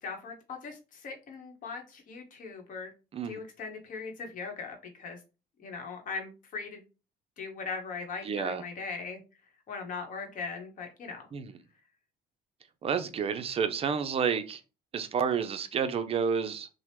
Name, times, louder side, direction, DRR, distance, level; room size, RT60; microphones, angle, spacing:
voice 1, 0.0-2.9 3.2-5.2 5.6-6.8 7.4-9.2 9.7-11.3, left 4 dB, 50° left, 0.9 m, -39 dB
voice 2, 8.2-8.6 11.3-11.5 12.8-14.6 14.9-16.7, right 6 dB, 35° right, 0.4 m, -30 dB
2.9 x 2.0 x 3.2 m
cardioid pair, 110°, 17 cm